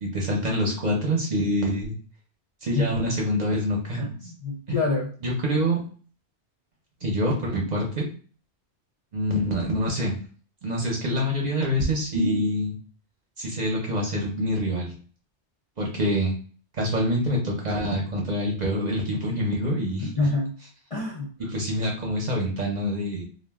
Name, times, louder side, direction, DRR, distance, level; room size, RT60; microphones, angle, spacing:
voice 1, 0.0-1.9 2.6-4.1 4.7-4.8 5.2-5.8 7.0-8.1 9.1-10.1 10.6-12.7 13.4-14.9 15.8-16.3 16.8-20.2 21.5-23.2, equal, 45° right, -2 dB, 0.7 m, -26 dB
voice 2, 4.0-5.1 20.2-20.5 20.9-21.3, left 3 dB, 45° left, -3 dB, 0.4 m, -26 dB
2.4 x 2.1 x 3.4 m, 0.41 s
omnidirectional pair, 1.2 m